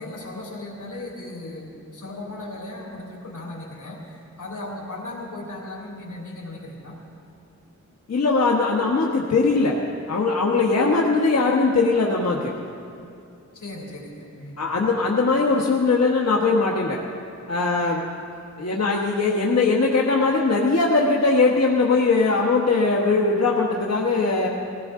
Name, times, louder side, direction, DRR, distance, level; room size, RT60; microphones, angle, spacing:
voice 1, 0.0-7.0 13.5-14.8, left 2 dB, 85° left, -2 dB, 3.1 m, -37 dB
voice 2, 8.1-9.7 10.1-12.5 14.6-17.0 17.5-18.1 18.6-24.5, left 3 dB, 60° left, -2 dB, 1.3 m, -20 dB
20.5 x 16.5 x 3.8 m, 2.6 s
wide cardioid pair, 95°, 30 cm